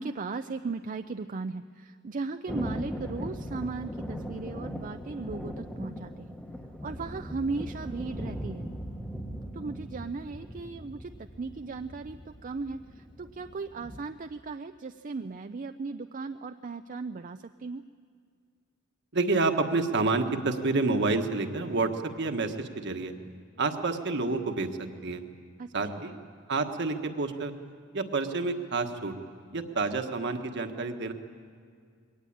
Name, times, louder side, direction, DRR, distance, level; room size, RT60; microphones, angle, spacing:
voice 1, 0.0-6.4 6.8-8.7 9.3-17.8 25.6-25.7, right 4 dB, 40° right, 8 dB, 0.5 m, -37 dB
Thunder, 2.5-14.0, equal, 5° left, 1.2 m, -39 dB
voice 2, 19.1-23.1 23.6-25.2 25.7-26.2 26.5-27.5 27.9-29.1 29.5-31.1, right 3 dB, 60° right, 6 dB, 1.5 m, -29 dB
22.0 x 18.5 x 8.7 m, 2.1 s
head